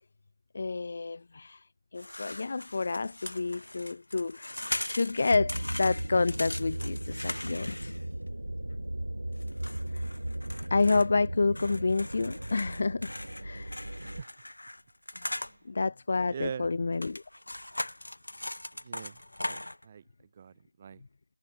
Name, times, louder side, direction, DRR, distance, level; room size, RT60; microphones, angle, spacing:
voice 1, 0.5-1.6 1.9-4.6 4.9-7.9 9.9-10.0 10.7-13.1 13.4-13.8 15.7-17.2, left 3 dB, 30° left, 0.8 m, -29 dB
sound 1, 2.0-8.3 9.4-11.1 11.6-15.6 16.9-19.8, left 1 dB, 70° left, 3.2 m, -40 dB
sound 2, 5.3-14.2, right 1 dB, 85° right, 3.1 m, -36 dB
voice 2, 14.0-14.3 15.3-15.6 16.3-16.7 18.8-19.2 19.5-19.6 19.8-20.0 20.4-21.0, right 7 dB, 15° right, 2.2 m, -41 dB
figure-of-eight pair, 175°, 0 cm